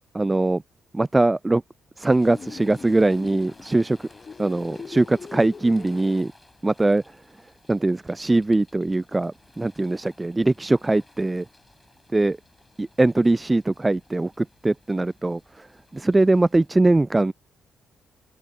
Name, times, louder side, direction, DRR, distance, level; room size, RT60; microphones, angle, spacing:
voice 1, 0.1-0.6 0.9-1.6 2.0-4.1 4.4-6.3 6.6-7.0 7.7-11.4 12.1-12.4 12.8-15.7 15.9-17.3, right 2 dB, 20° right, 0.3 m, -21 dB
sound 1, 2.0-16.7, left 2 dB, 15° left, 7.1 m, -55 dB
sound 2, 2.2-6.2, left 5 dB, 45° left, 0.8 m, -41 dB
open air
hypercardioid pair, 45°, 0 cm